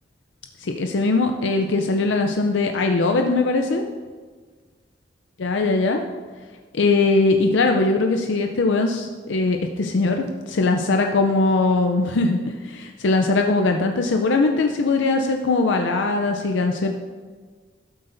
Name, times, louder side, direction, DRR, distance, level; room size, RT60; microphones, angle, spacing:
voice 1, 0.6-3.8 5.4-6.0 6.7-16.9, left 3 dB, 85° left, 4 dB, 0.5 m, -21 dB
12.5 x 7.8 x 2.6 m, 1.5 s
head